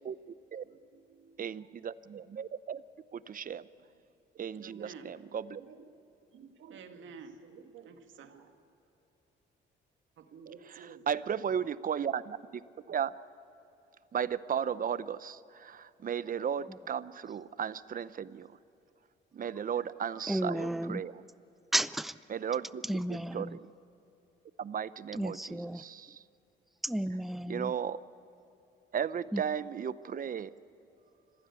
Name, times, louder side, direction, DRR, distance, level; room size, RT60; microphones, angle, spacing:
voice 1, 0.6-1.9 3.7-3.9 4.6-5.1 5.6-5.9 6.2-8.6 10.2-11.1, right 6 dB, 75° right, 6 dB, 2.1 m, -52 dB
voice 2, 1.4-2.8 3.1-3.7 4.4-5.6 11.1-12.6 12.9-13.1 14.1-18.6 19.3-21.2 22.3-22.8 23.1-23.7 24.6-26.2 27.5-28.0 28.9-30.5, right 8 dB, 45° right, 17 dB, 0.7 m, -35 dB
voice 3, 20.3-21.0 21.7-22.2 22.8-23.6 25.1-25.8 26.8-27.7 29.3-29.4, right 1 dB, ahead, 16 dB, 0.5 m, -33 dB
26.0 x 15.5 x 8.3 m, 2.9 s
cardioid pair, 90°, 20 cm